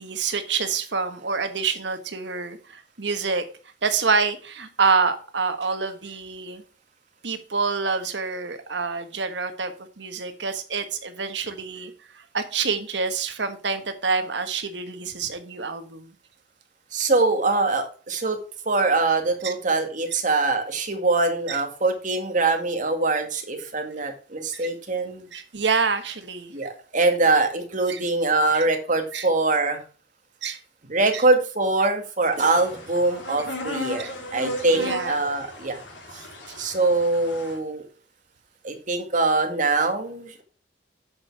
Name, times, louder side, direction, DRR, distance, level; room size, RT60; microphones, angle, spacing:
voice 1, 0.0-3.4 3.8-6.6 7.2-16.1 19.4-19.5 21.5-21.6 24.5-24.7 25.3-26.5 27.9-28.0 28.5-28.7 29.1-29.3 30.4-30.6 31.1-31.2 34.0-34.1 34.7-35.1, right 5 dB, 75° right, 8 dB, 1.4 m, -27 dB
voice 2, 16.9-18.4 18.7-25.3 26.5-29.8 30.9-35.8 36.1-36.2 36.6-37.8 38.6-40.3, right 3 dB, 45° right, 4 dB, 2.1 m, -23 dB
sound 1, 32.3-37.6, left 1 dB, 85° left, 3.3 m, -35 dB
8.6 x 6.3 x 4.8 m, 0.37 s
head